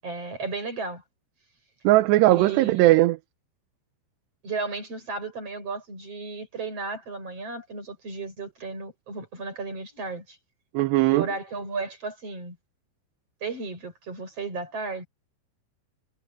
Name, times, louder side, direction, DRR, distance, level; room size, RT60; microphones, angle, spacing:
voice 1, 0.0-1.0 2.3-2.9 4.4-10.4 11.1-12.6 13.4-15.1, right 4 dB, 30° right, 8.0 m, -34 dB
voice 2, 1.8-3.2 10.7-11.3, right 17 dB, 75° right, 2.7 m, -19 dB
omnidirectional pair, 5.3 m